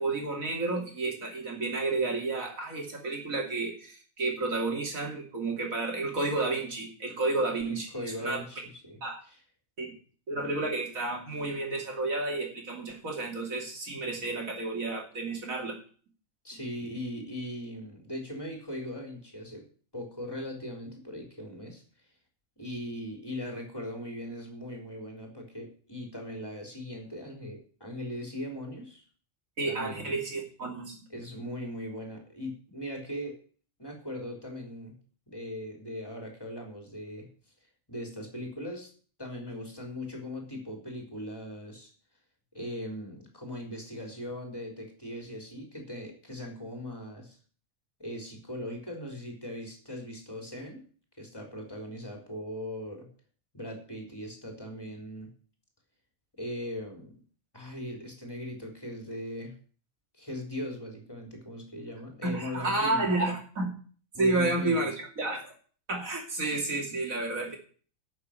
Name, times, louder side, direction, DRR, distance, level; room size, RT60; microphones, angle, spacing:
voice 1, 0.0-8.4 9.0-9.2 9.8-9.9 10.3-15.8 29.6-31.0 62.2-63.7 64.2-65.5 65.9-67.6, right 2 dB, 85° right, 0 dB, 3.2 m, -31 dB
voice 2, 7.7-9.4 16.4-19.6 19.9-21.8 22.6-29.0 29.6-30.1 31.1-33.4 33.8-35.0 35.3-37.3 37.9-38.9 39.2-41.9 42.5-47.4 48.0-50.8 51.2-53.1 53.5-55.3 56.4-57.1 57.5-59.5 60.2-63.1 64.1-64.9, left 1 dB, 15° left, 1 dB, 3.9 m, -39 dB
12.0 x 6.8 x 8.7 m, 0.43 s
omnidirectional pair, 1.4 m